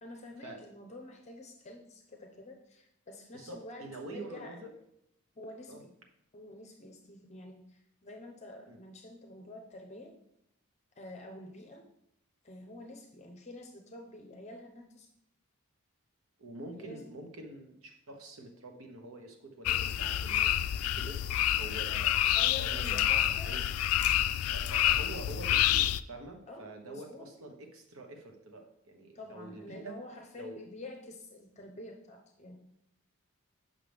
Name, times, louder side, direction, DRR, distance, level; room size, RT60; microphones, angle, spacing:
voice 1, 0.0-4.6 5.4-5.9 6.3-10.1 11.0-11.9 12.4-15.1 16.8-17.0 22.3-23.6 26.5-27.3 29.1-32.6, left 2 dB, 30° left, 3 dB, 0.8 m, -48 dB
voice 2, 3.3-4.7 5.7-5.8 8.7-8.8 16.4-20.5 20.9-22.1 22.6-23.7 24.5-30.0 30.3-30.6, right 2 dB, 80° right, 3 dB, 1.2 m, -46 dB
sound 1, 19.7-26.0, left 12 dB, 85° left, 0.3 m, -28 dB
7.8 x 5.8 x 3.4 m, 0.79 s
head